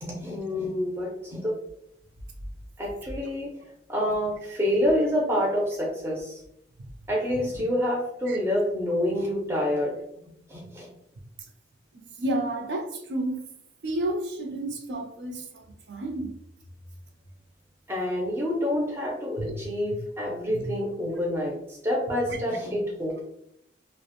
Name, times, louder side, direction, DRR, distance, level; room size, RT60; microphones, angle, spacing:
voice 1, 0.0-1.5 2.8-3.5 3.9-6.4 7.1-9.9 10.5-10.9 17.9-23.2, left 1 dB, 15° right, -3 dB, 0.4 m, -27 dB
voice 2, 11.9-13.4 13.8-15.4 15.9-16.3 19.4-19.6 20.5-20.7 22.3-22.4, right 1 dB, 70° right, 4 dB, 0.5 m, -31 dB
2.3 x 2.0 x 2.8 m, 0.76 s
head